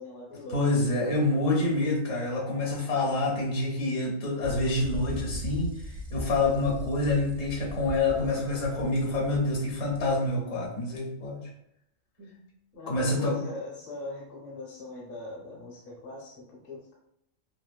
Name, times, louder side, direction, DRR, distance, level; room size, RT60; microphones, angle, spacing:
voice 1, 0.0-0.6 12.2-12.4 12.7-16.9, left 1 dB, 50° left, -3 dB, 0.9 m, -41 dB
voice 2, 0.5-11.5 12.9-13.4, left 2 dB, 75° left, -2 dB, 1.1 m, -27 dB
sound 1, 4.4-10.3, equal, 75° right, 0.9 m, -39 dB
3.0 x 2.5 x 2.2 m, 0.78 s
omnidirectional pair, 1.4 m